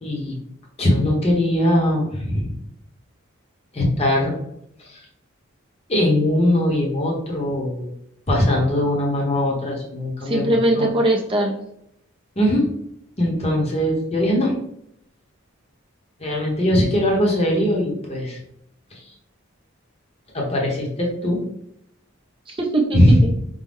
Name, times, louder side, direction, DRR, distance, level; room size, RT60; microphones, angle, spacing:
voice 1, 0.0-0.3 0.8-2.5 3.7-4.3 4.8-5.0 5.9-7.9 8.3-10.9 12.4-12.7 13.2-14.6 16.2-18.4 18.9-19.1 20.3-21.4 22.9-23.4, left 1 dB, 30° left, -2 dB, 1.0 m, -20 dB
voice 2, 10.2-11.6 22.5-23.3, right 1 dB, 25° right, -1 dB, 0.5 m, -21 dB
5.3 x 2.2 x 3.5 m, 0.75 s
head